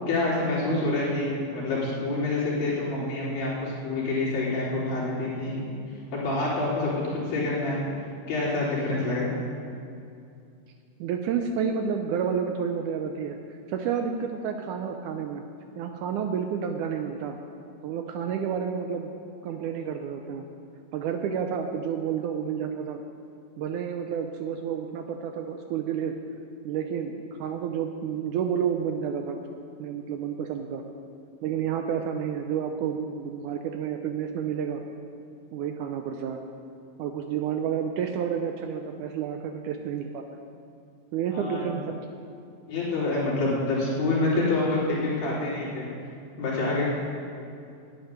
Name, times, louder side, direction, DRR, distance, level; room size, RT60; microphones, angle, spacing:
voice 1, 0.1-5.7 6.1-7.8 8.3-9.4 41.3-41.6 42.7-45.9 46.4-46.9, left 2 dB, 80° left, -7 dB, 5.1 m, -27 dB
voice 2, 0.6-1.0 11.0-13.4 13.7-15.4 15.8-17.4 17.8-19.2 19.4-20.4 20.9-23.0 23.6-26.2 26.6-29.4 29.8-30.8 31.4-34.8 35.5-36.4 37.0-40.2 41.1-42.0, right 7 dB, 75° right, 5 dB, 1.9 m, -30 dB
10.5 x 8.0 x 9.7 m, 2.5 s
omnidirectional pair, 4.0 m